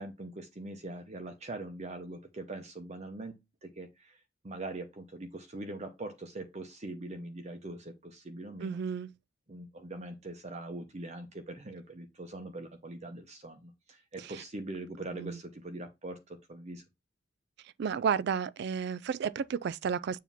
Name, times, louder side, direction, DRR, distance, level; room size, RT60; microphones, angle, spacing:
voice 1, 0.0-8.8 9.5-16.8, right 2 dB, 35° right, 0.8 m, -42 dB
voice 2, 8.6-9.1 15.1-15.4 17.8-20.2, right 6 dB, 60° right, 0.3 m, -32 dB
7.1 x 2.9 x 5.6 m
head